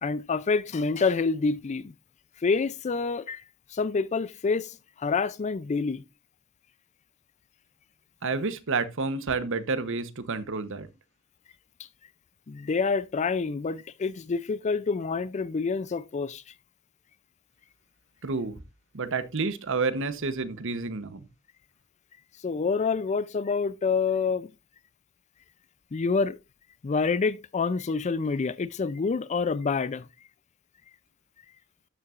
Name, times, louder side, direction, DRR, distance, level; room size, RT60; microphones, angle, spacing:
voice 1, 0.0-1.9 2.4-3.4 3.7-6.0 12.5-16.4 22.4-24.5 25.9-26.4 26.8-30.1, left 4 dB, 35° left, 0.4 m, -27 dB
voice 2, 8.2-10.9 18.2-18.6 18.9-21.2, right 4 dB, 60° right, 0.9 m, -29 dB
12.5 x 6.9 x 2.5 m
head